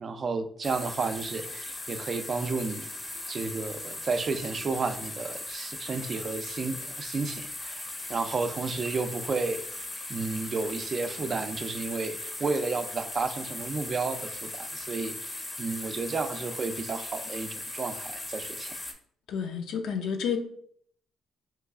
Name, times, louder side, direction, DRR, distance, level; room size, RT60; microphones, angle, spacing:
voice 1, 0.0-2.9 3.3-9.7 10.1-18.8, right 4 dB, 45° right, 8 dB, 0.4 m, -32 dB
sound 1, 0.6-18.9, left 2 dB, 25° left, 0.6 m, -38 dB
voice 2, 19.3-20.4, left 7 dB, 80° left, 5 dB, 0.4 m, -30 dB
3.0 x 2.3 x 3.5 m, 0.62 s
cardioid pair, 90°, 0 cm